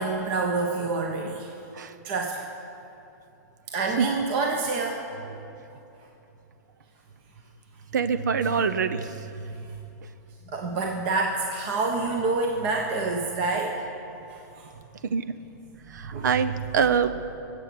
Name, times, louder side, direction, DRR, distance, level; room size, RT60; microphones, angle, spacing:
voice 1, 0.0-1.6 2.0-2.4 3.7-5.4 9.4-9.8 10.5-13.8 14.3-14.7 16.0-16.3, right 3 dB, 35° right, 1 dB, 1.1 m, -28 dB
voice 2, 7.9-9.1 15.1-15.2 15.9-17.1, right 6 dB, 85° right, 12 dB, 0.8 m, -24 dB
21.5 x 8.3 x 6.0 m, 2.9 s
hypercardioid pair, 165°, 10 cm